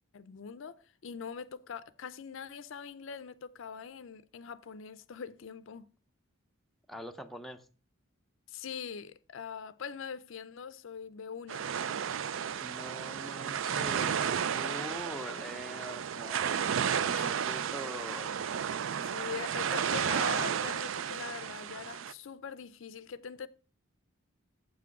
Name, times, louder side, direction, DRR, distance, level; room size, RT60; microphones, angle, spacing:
voice 1, 0.1-0.8 1.0-5.9 8.5-11.7 17.1-17.4 19.0-23.5, left 6 dB, 65° left, 0.5 m, -42 dB
voice 2, 6.9-7.7 12.6-16.6 17.0-18.5, equal, ahead, 0.5 m, -44 dB
sound 1, 11.5-22.1, right 8 dB, 65° right, 0.4 m, -33 dB
7.6 x 6.0 x 5.8 m
head